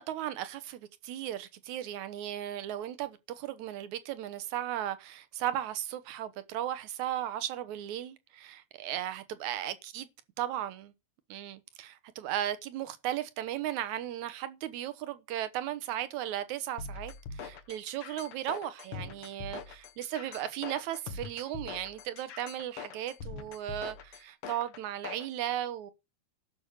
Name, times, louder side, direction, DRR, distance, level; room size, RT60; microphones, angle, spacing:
voice 1, 0.0-10.1 10.4-10.9 11.3-25.9, right 12 dB, 65° right, 2.1 m, -36 dB
sound 1, 16.8-25.3, left 5 dB, 85° left, 1.2 m, -43 dB
12.5 x 6.2 x 6.5 m
omnidirectional pair, 4.2 m